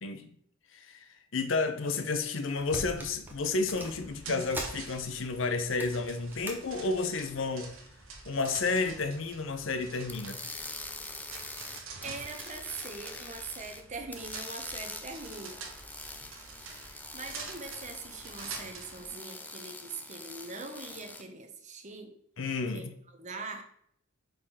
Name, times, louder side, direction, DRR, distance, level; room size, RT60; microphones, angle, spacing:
voice 1, 0.7-1.1 1.3-7.7 8.3-10.4 22.4-22.9, left 3 dB, 65° left, 0.7 m, -31 dB
sound 1, 2.1-2.2 2.5-5.2 5.6-6.6 7.0-7.3 8.1-8.6 9.0-9.1, right 1 dB, 10° right, 1.1 m, -42 dB
sound 2, 4.0-19.1, right 4 dB, 80° right, 1.2 m, -47 dB
Welding machine, 10.1-13.8 14.1-21.2, left 2 dB, 10° left, 0.5 m, -44 dB
voice 2, 12.0-15.6 16.9-22.1 22.7-22.8 23.2-23.6, right 4 dB, 35° right, 0.9 m, -42 dB
5.1 x 4.5 x 5.5 m
head